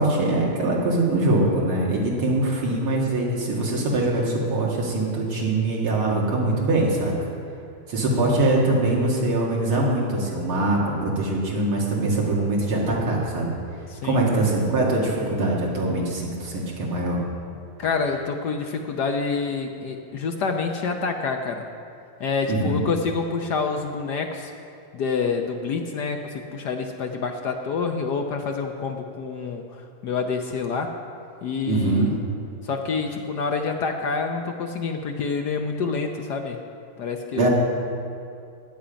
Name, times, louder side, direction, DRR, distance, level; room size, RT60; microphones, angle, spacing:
voice 1, 0.0-7.1 7.9-13.6 14.0-17.2 22.5-22.8 31.7-32.1 37.4-37.5, right 2 dB, 80° right, -4 dB, 2.8 m, -23 dB
voice 2, 13.9-14.2 17.8-21.6 22.2-24.5 24.9-30.9 31.4-32.1 32.6-36.6 37.0-37.5, left 4 dB, 60° left, 4 dB, 1.2 m, -27 dB
16.0 x 10.0 x 5.1 m, 2.5 s
omnidirectional pair, 2.3 m